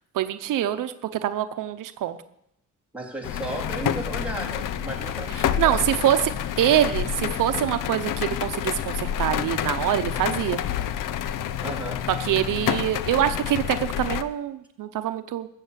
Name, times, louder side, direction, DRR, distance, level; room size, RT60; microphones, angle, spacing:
voice 1, 0.1-2.2 5.6-6.3 6.6-10.6 12.2-15.5, right 11 dB, 90° right, 10 dB, 0.8 m, -24 dB
voice 2, 2.9-5.8 11.6-12.0, right 2 dB, 5° right, -2 dB, 3.4 m, -34 dB
sound 1, 3.2-14.2, left 10 dB, 90° left, 0.7 m, -28 dB
14.0 x 7.4 x 8.1 m, 0.78 s
cardioid pair, 110°, 31 cm